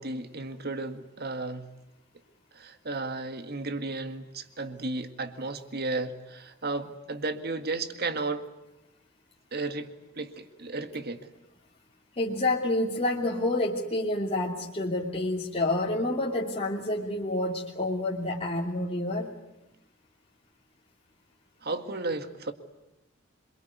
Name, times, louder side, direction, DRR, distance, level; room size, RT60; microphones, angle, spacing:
voice 1, 0.0-1.7 2.6-8.4 9.5-9.9 10.2-11.2 21.6-22.5, right 3 dB, 55° right, 8 dB, 1.9 m, -34 dB
voice 2, 12.2-19.3, left 2 dB, 30° left, -3 dB, 2.8 m, -28 dB
27.0 x 23.0 x 9.4 m, 0.90 s
head